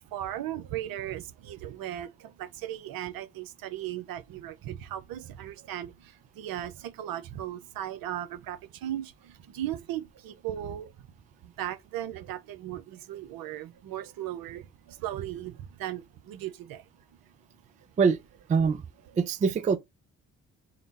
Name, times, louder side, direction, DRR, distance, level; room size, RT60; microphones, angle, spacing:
voice 1, 0.0-10.9 11.4-16.8, right 12 dB, 60° right, 0.7 m, -37 dB
voice 2, 18.5-18.8 19.2-19.8, right 5 dB, 20° right, 0.4 m, -23 dB
3.8 x 2.0 x 3.3 m
hypercardioid pair, 40°, 40 cm